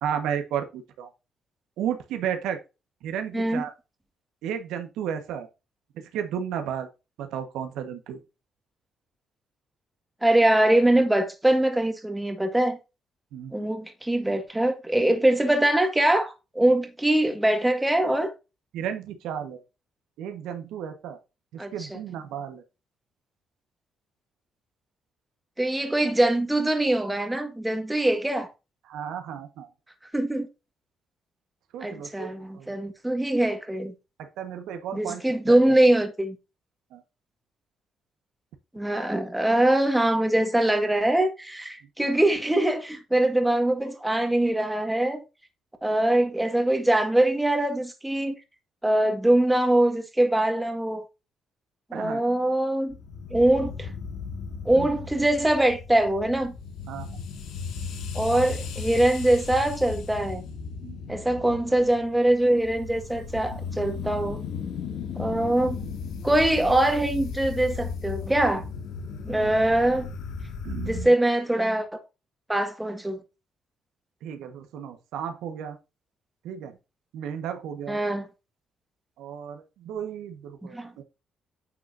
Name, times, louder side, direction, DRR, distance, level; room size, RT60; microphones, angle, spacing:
voice 1, 0.0-1.1 1.8-2.6 3.0-3.7 4.4-5.5 5.9-6.9 7.2-8.2 13.3-13.7 18.7-19.6 20.2-21.2 21.7-22.6 28.9-29.7 31.7-32.3 32.5-32.7 34.2-35.2 35.5-35.7 36.9-37.0 51.9-52.2 54.8-54.9 56.9-57.1 60.8-61.0 70.6-71.1 74.2-75.8 76.4-76.8 77.1-78.0 79.2-81.0, right 8 dB, 90° right, 1.4 m, -33 dB
voice 2, 10.2-12.8 13.5-18.3 21.6-22.0 25.6-28.5 30.1-30.5 31.8-33.9 34.9-36.4 38.7-45.2 45.8-48.4 48.8-51.0 51.9-53.0 53.3-53.9 54.7-56.5 58.1-60.5 61.1-64.4 65.2-65.8 66.2-68.7 69.2-70.1 70.9-72.0 72.5-73.2 77.9-78.3 80.7-80.9, right 1 dB, 10° right, 1.8 m, -23 dB
sound 1, 52.9-71.1, left 5 dB, 80° left, 2.1 m, -36 dB
9.6 x 6.3 x 2.7 m
cardioid pair, 90°, 0 cm